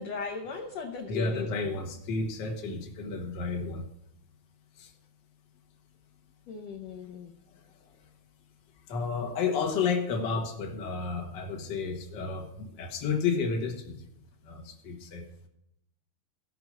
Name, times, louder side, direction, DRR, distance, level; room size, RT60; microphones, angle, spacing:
voice 1, 0.0-1.6 6.5-7.3, left 5 dB, 70° left, 2 dB, 1.6 m, -37 dB
voice 2, 1.1-3.8 4.8-4.9 8.9-14.0 14.5-15.2, left 5 dB, 50° left, 3 dB, 1.5 m, -31 dB
16.0 x 5.8 x 6.2 m, 0.78 s
omnidirectional pair, 4.0 m